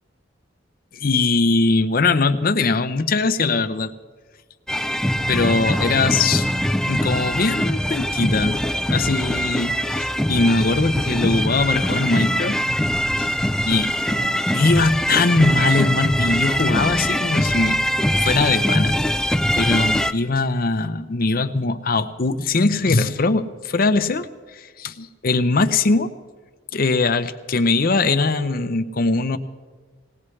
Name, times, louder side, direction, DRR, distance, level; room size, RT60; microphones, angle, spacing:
voice 1, 0.9-3.9 5.3-6.5 6.9-8.6 8.9-12.6 13.2-13.3 13.7-13.9 14.5-17.9 18.2-18.9 19.5-26.1 26.7-29.4, left 3 dB, 45° left, 9 dB, 0.6 m, -21 dB
sound 1, 4.7-20.1, equal, 5° left, 0.3 m, -22 dB
19.5 x 18.5 x 3.2 m, 1.4 s
head